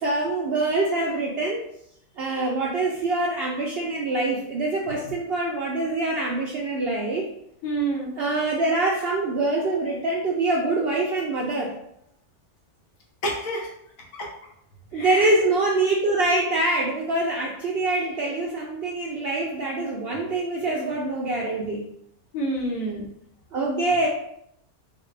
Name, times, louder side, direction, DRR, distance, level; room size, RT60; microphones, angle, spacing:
voice 1, 0.0-1.6 2.2-7.3 8.2-11.7 14.9-21.9 23.5-24.1, right 2 dB, 75° right, -2 dB, 0.5 m, -24 dB
voice 2, 7.6-8.1 13.2-13.7 14.1-14.3 14.9-15.3 22.3-23.0, right 2 dB, 65° left, -1 dB, 1.2 m, -28 dB
4.0 x 2.2 x 3.2 m, 0.74 s
omnidirectional pair, 1.6 m